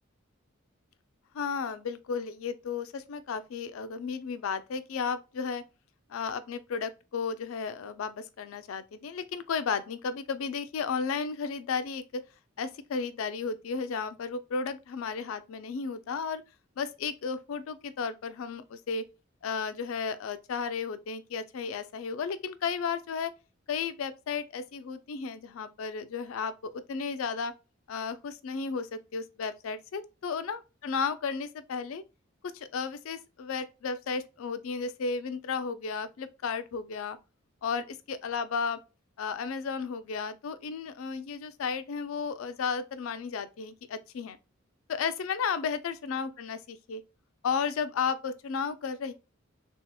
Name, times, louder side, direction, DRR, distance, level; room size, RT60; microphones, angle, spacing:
voice 1, 1.3-5.6 6.1-12.2 12.6-16.4 16.8-19.0 19.4-23.3 23.7-27.5 27.9-32.0 32.5-37.2 37.6-38.8 39.2-44.4 44.9-47.0 47.4-49.1, left 5 dB, 80° left, 0.4 m, -33 dB
3.3 x 2.7 x 2.2 m
head